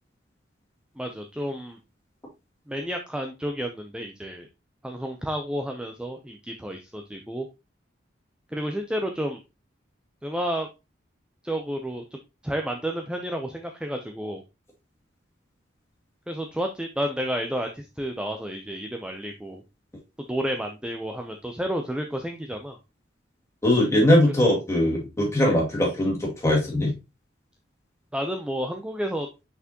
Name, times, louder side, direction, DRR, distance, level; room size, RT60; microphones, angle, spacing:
voice 1, 1.0-1.8 2.7-4.5 4.8-7.5 8.5-9.4 10.2-10.7 11.4-12.2 12.4-14.4 16.3-19.6 20.3-22.8 28.1-29.3, equal, 5° right, 4 dB, 0.5 m, -31 dB
voice 2, 23.6-26.9, left 1 dB, 15° left, -3 dB, 2.3 m, -21 dB
5.9 x 5.8 x 2.8 m, 0.25 s
head